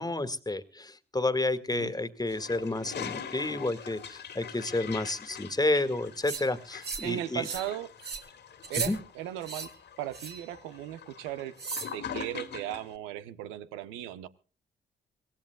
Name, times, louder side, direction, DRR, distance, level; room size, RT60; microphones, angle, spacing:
voice 1, 0.0-7.5 8.8-9.0, left 2 dB, 20° left, 2.0 m, -30 dB
Toilet flush, 2.3-12.9, left 7 dB, 60° left, 2.2 m, -43 dB
sound 1, 6.2-6.4 6.8-7.1 7.4-7.7 8.0-8.2 8.6-8.9 9.4-9.7 10.1-10.4 11.6-11.9, right 5 dB, 60° right, 2.9 m, -36 dB
voice 2, 7.0-7.9 8.7-9.7 10.0-11.5 11.9-14.3, right 12 dB, 80° right, 1.0 m, -37 dB
24.5 x 17.5 x 2.4 m
hypercardioid pair, 45°, 20 cm